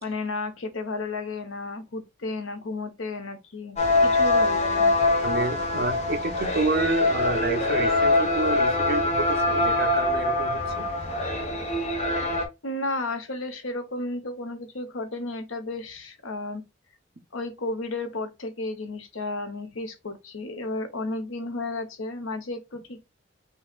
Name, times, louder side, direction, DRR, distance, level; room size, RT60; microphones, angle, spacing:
voice 1, 0.0-4.9 12.6-16.6 17.3-23.0, left 2 dB, 80° left, 1.0 m, -33 dB
sound 1, 3.8-12.4, left 2 dB, 35° left, 1.2 m, -23 dB
voice 2, 5.2-10.9, right 3 dB, 50° right, 0.8 m, -29 dB
5.6 x 3.2 x 2.4 m
head